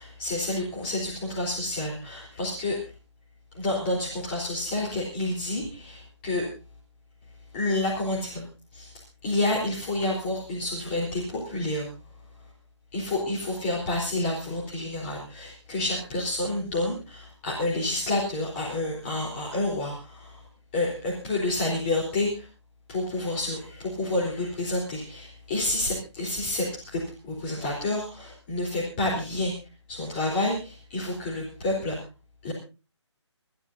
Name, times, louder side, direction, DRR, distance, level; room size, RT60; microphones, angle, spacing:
voice 1, 0.0-2.9 3.5-6.5 7.5-8.4 8.7-8.9 9.2-11.9 12.9-20.4 20.7-22.5 22.9-29.5 29.9-32.0 32.4-32.5, left 2 dB, 25° left, -3 dB, 3.9 m, -29 dB
26.5 x 13.5 x 2.7 m, 0.32 s
figure-of-eight pair, 145°, 15 cm